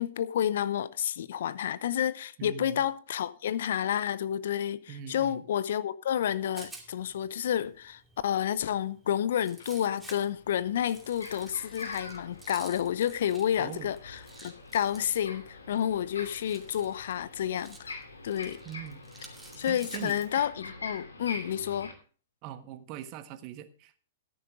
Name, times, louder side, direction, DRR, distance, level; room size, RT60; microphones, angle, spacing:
voice 1, 0.0-18.6 19.6-21.9, left 10 dB, 60° left, 0.7 m, -30 dB
voice 2, 2.4-2.8 4.9-5.4 13.6-13.9 18.6-19.0 19.7-20.2 22.4-24.0, right 11 dB, 40° right, 1.4 m, -41 dB
Rattle, 6.2-20.3, right 3 dB, 10° right, 2.4 m, -53 dB
sound 1, 10.3-21.9, left 3 dB, 80° left, 2.6 m, -45 dB
13.5 x 10.5 x 3.7 m
figure-of-eight pair, 105°, 0 cm